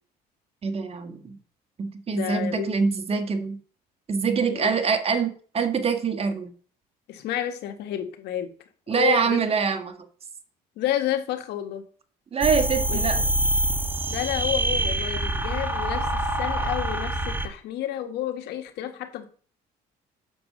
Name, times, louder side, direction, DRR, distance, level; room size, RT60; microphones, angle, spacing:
voice 1, 0.6-1.4 1.8-3.6 4.1-6.5 8.9-9.9 12.3-13.2, right 5 dB, 35° right, 7 dB, 1.7 m, -24 dB
voice 2, 2.1-2.7 4.5-4.7 7.1-8.5 8.9-9.4 10.8-11.8 12.9-13.2 14.1-19.3, left 11 dB, 80° left, 6 dB, 1.7 m, -30 dB
sound 1, 12.4-17.5, right 1 dB, 10° right, 1.3 m, -25 dB
8.3 x 6.3 x 6.8 m, 0.43 s
cardioid pair, 110°, 17 cm